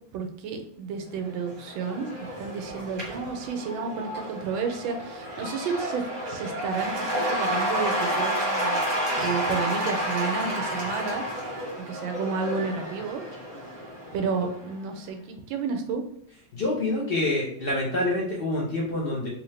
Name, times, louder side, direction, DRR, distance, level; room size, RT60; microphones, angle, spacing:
voice 1, 0.1-8.8 9.2-11.2 11.8-13.2 14.1-16.0, right 5 dB, 80° right, 5 dB, 1.3 m, -31 dB
Cheering / Applause / Crowd, 1.3-14.7, equal, 30° right, 1.3 m, -30 dB
voice 2, 16.5-19.3, left 1 dB, 80° left, -4 dB, 0.5 m, -27 dB
3.4 x 2.8 x 3.1 m, 0.71 s
omnidirectional pair, 2.1 m